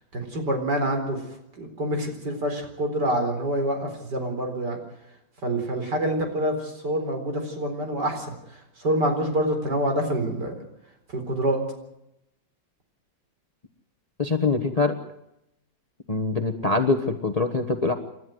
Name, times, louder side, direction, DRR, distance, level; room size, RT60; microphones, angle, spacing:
voice 1, 0.1-1.2 1.6-4.8 5.4-8.3 8.8-10.5 11.1-11.6, right 1 dB, 60° right, 4 dB, 4.7 m, -26 dB
voice 2, 14.2-15.0 16.1-17.9, left 3 dB, 25° left, 7 dB, 1.1 m, -24 dB
29.0 x 13.0 x 7.9 m, 0.84 s
omnidirectional pair, 2.1 m